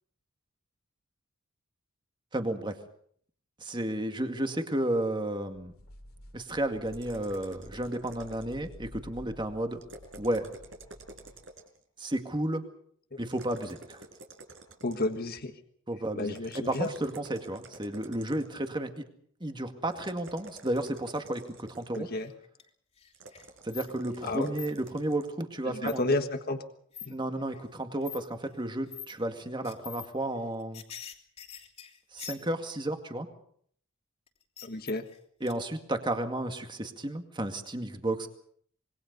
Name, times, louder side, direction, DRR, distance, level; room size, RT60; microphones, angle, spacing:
voice 1, 2.3-2.8 3.6-5.7 6.3-9.8 10.2-10.5 12.0-12.6 13.2-14.0 15.9-19.1 19.4-22.1 23.6-26.1 27.1-30.8 32.1-33.3 35.4-38.3, right 1 dB, 20° right, 6 dB, 2.1 m, -32 dB
sound 1, 5.5-11.5, left 1 dB, 80° left, 2.8 m, -51 dB
sound 2, 6.9-8.7 9.8-11.8 13.3-15.3 16.3-18.7 19.9-22.1 23.1-25.3, right 2 dB, 60° right, 5.0 m, -50 dB
voice 2, 14.8-15.5 16.1-16.9 21.9-22.3 24.2-24.5 25.7-26.6 27.0-27.1 34.6-35.0, left 2 dB, 45° left, 7 dB, 1.6 m, -31 dB
sound 3, 22.2-22.7 23.0-24.3 24.6-24.7 25.8-26.2 26.9-27.1 27.5-27.6 28.0-28.2 28.9-29.1 29.6-30.1 30.4-32.8 34.3-35.2 35.5-35.6, left 9 dB, 30° left, 3.0 m, -44 dB
26.5 x 22.0 x 5.4 m, 0.62 s
head